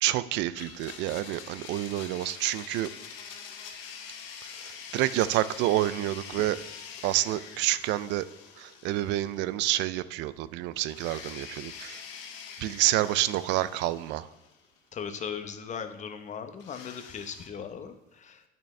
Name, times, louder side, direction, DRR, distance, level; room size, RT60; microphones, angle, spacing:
voice 1, 0.0-2.9 4.6-6.6 7.0-8.3 8.6-12.0 12.6-14.3, right 15 dB, 70° right, 15 dB, 0.4 m, -28 dB
Domestic sounds home sounds, 0.5-9.7 10.0-10.1 10.8-14.8 16.6-17.5, left 7 dB, 80° left, 1.0 m, -45 dB
voice 2, 14.9-18.4, left 7 dB, 40° left, 8 dB, 0.9 m, -38 dB
8.7 x 6.1 x 3.2 m, 1.1 s
supercardioid pair, 100°, 19 cm